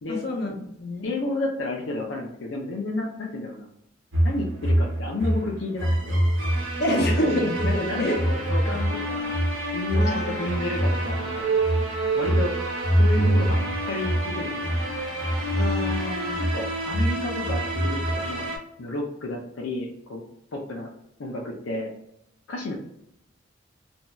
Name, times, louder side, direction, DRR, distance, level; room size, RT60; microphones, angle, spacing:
voice 1, 0.1-1.1 6.8-7.7 8.0-8.2 9.9-10.5 15.5-16.4, left 1 dB, 55° left, 0 dB, 0.8 m, -27 dB
voice 2, 1.0-3.7 4.2-6.2 7.6-9.4 9.7-11.5 12.2-12.5 12.9-13.6 13.9-14.8 16.4-18.5 18.8-20.2 20.5-20.9 21.2-21.9 22.5-22.8, left 2 dB, 90° left, -1 dB, 0.5 m, -31 dB
sound 1, 4.1-18.6, right 1 dB, 70° right, 1.0 m, -25 dB
2.6 x 2.2 x 3.0 m, 0.78 s
head